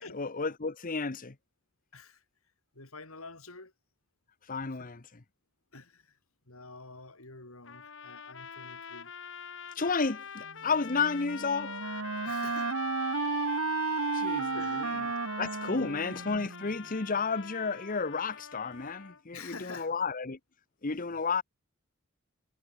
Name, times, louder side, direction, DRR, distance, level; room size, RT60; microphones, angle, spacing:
voice 1, 0.0-1.4 4.5-5.2 9.7-11.7 14.1-14.5 14.8-14.9 15.4-20.4 20.8-21.4, left 4 dB, 40° left, 1.0 m, -32 dB
voice 2, 1.9-2.2 2.7-3.7 4.8-4.9 5.7-6.2 6.5-9.1 12.2-12.8 14.5-15.0 15.7-16.0 19.3-19.9 21.1-21.4, left 3 dB, 75° left, 7.2 m, -48 dB
sound 1, 7.6-19.2, left 7 dB, 60° left, 2.4 m, -44 dB
Wind instrument woodwind instrument, 10.9-16.7, right 4 dB, 85° right, 1.5 m, -33 dB
head